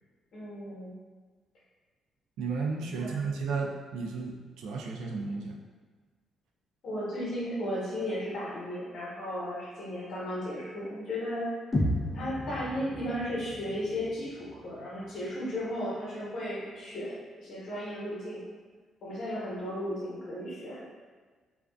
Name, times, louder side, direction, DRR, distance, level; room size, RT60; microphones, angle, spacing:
voice 1, 0.3-0.9 3.0-3.2 6.8-11.5 12.1-18.4 19.0-20.8, equal, 65° left, -7 dB, 1.0 m, -35 dB
voice 2, 2.4-5.5, right 4 dB, 85° right, 0 dB, 0.3 m, -33 dB
sound 1, 11.7-15.7, left 1 dB, 20° left, 0.5 m, -34 dB
2.4 x 2.4 x 2.2 m, 1.4 s
cardioid pair, 90°, 0 cm